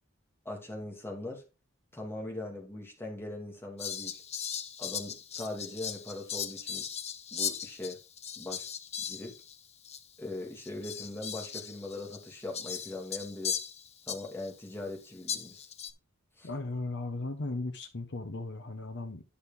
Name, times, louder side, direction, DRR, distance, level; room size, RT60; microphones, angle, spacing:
voice 1, 0.4-1.4 1.9-4.2 4.8-6.9 7.3-8.0 8.4-8.6 9.0-9.3 10.2-13.6 14.1-15.6 16.4-16.5, left 2 dB, 10° left, 2.6 m, -40 dB
Fowl, 3.8-9.6 9.8-10.0 10.6-14.5 15.3-15.9, left 8 dB, 30° left, 0.8 m, -38 dB
voice 2, 16.4-19.2, left 2 dB, 55° left, 1.0 m, -36 dB
9.9 x 6.6 x 3.6 m
head